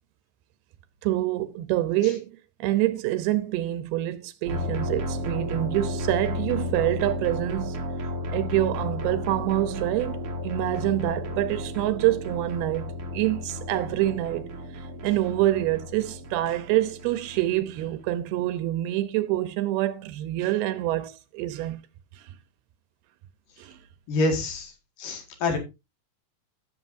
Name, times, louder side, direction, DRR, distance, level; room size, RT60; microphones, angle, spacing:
voice 1, 1.0-2.3 2.6-7.9 8.3-10.2 10.4-14.5 15.0-21.8 23.6-23.8, right 15 dB, 85° right, 2.7 m, -26 dB
sound 1, 4.5-18.1, left 1 dB, 50° right, 1.8 m, -33 dB
voice 2, 24.1-24.7 25.0-25.6, left 2 dB, 60° left, 3.5 m, -26 dB
15.0 x 7.2 x 2.6 m
omnidirectional pair, 4.5 m